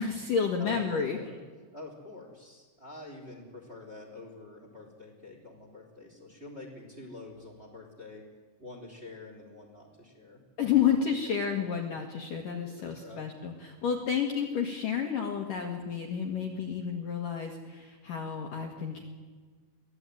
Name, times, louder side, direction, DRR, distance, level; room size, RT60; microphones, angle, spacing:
voice 1, 0.0-1.2 10.6-19.0, left 7 dB, 55° left, 2 dB, 2.7 m, -30 dB
voice 2, 0.6-1.4 1.7-8.2 8.6-10.4 11.8-11.9 12.8-13.3, left 2 dB, 15° right, 3 dB, 3.4 m, -46 dB
24.0 x 17.0 x 9.3 m, 1.5 s
omnidirectional pair, 5.7 m